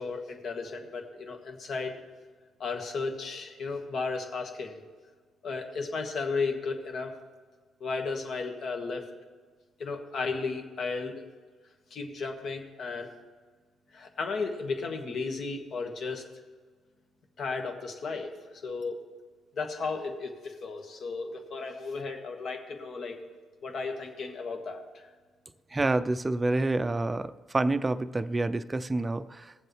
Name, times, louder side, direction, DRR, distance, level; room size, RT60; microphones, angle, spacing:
voice 1, 0.0-2.0 2.6-4.8 5.4-7.1 7.8-9.0 9.8-11.3 11.9-13.1 13.9-16.2 17.4-19.0 19.6-23.2 23.6-25.1, left 4 dB, 60° left, 4 dB, 1.6 m, -34 dB
voice 2, 25.7-29.5, right 2 dB, 20° right, 12 dB, 0.5 m, -28 dB
18.5 x 7.6 x 3.2 m, 1.4 s
cardioid pair, 90°, 0 cm